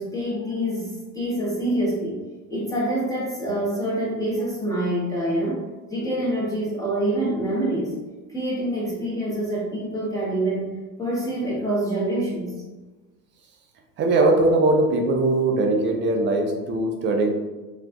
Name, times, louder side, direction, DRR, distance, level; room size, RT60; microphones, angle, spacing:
voice 1, 0.0-2.2 2.5-5.6 5.9-7.9 8.3-10.7 11.0-12.5, right 1 dB, 5° left, -7 dB, 0.8 m, -26 dB
voice 2, 14.0-17.3, right 2 dB, 25° right, 2 dB, 0.4 m, -20 dB
3.3 x 2.3 x 2.2 m, 1.2 s
hypercardioid pair, 75°, 49 cm